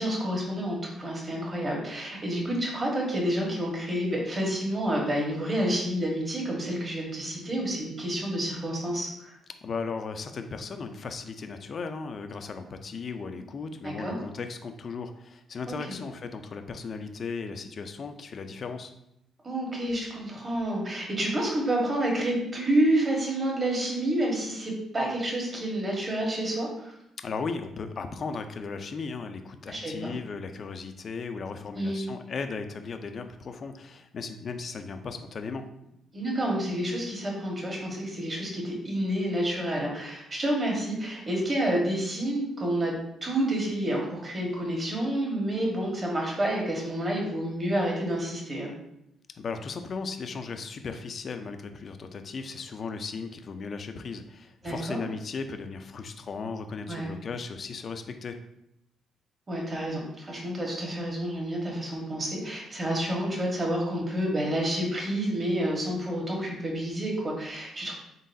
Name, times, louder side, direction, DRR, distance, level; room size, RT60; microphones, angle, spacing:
voice 1, 0.0-9.4 13.8-14.2 15.7-16.0 19.4-26.9 29.7-30.2 31.7-32.1 36.1-42.9 43.2-48.7 54.6-55.0 56.9-57.1 59.5-67.9, right 1 dB, 30° right, -2 dB, 1.3 m, -29 dB
voice 2, 9.6-18.9 27.2-35.6 49.4-58.4, left 4 dB, 50° left, 7 dB, 0.4 m, -36 dB
3.9 x 3.7 x 2.6 m, 0.80 s
cardioid pair, 90°, 0 cm